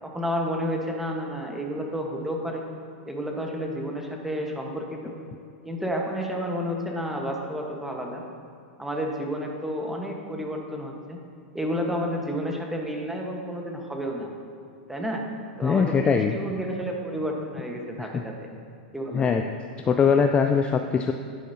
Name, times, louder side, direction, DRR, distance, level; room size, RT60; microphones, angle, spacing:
voice 1, 0.0-2.6 3.1-5.1 5.6-8.2 8.8-11.2 11.5-14.3 14.9-15.3 15.6-18.5 18.9-19.3, equal, 5° right, 0 dB, 1.3 m, -31 dB
voice 2, 15.6-16.4 18.0-18.2 19.1-19.4 19.8-21.1, left 6 dB, 20° left, 5 dB, 0.4 m, -22 dB
11.0 x 9.2 x 2.8 m, 2.6 s
hypercardioid pair, 115°, 5 cm